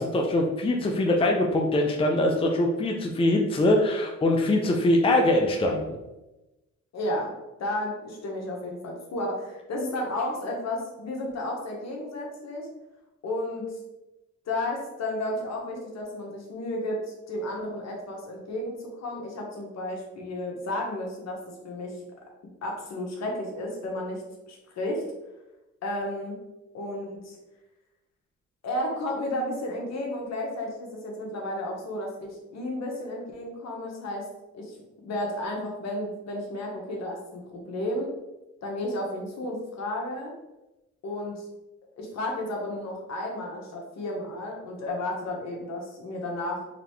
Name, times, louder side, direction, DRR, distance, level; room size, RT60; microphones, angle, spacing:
voice 1, 0.0-6.0, left 1 dB, 20° left, 1 dB, 0.5 m, -23 dB
voice 2, 6.9-7.3 7.6-12.7 13.2-13.8 14.5-21.4 21.6-22.0 22.6-25.0 25.8-26.4 26.7-27.4 28.6-34.3 34.5-38.1 38.6-40.3 41.0-41.4 42.0-46.7, left 1 dB, 60° left, 0 dB, 1.2 m, -32 dB
4.0 x 3.2 x 3.1 m, 1.0 s
cardioid pair, 90°, 30 cm